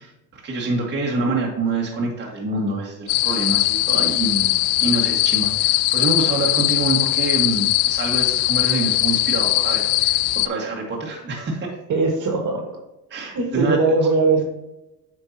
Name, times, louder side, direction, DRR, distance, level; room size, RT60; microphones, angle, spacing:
voice 1, 0.0-11.8 13.1-13.9, right 3 dB, 25° right, -2 dB, 2.0 m, -26 dB
sound 1, 3.1-10.5, left 18 dB, 55° left, 0.5 m, -20 dB
voice 2, 11.9-12.8 13.3-14.4, right 3 dB, 45° right, 1 dB, 2.2 m, -20 dB
9.2 x 5.2 x 3.0 m, 0.95 s
supercardioid pair, 100°, 41 cm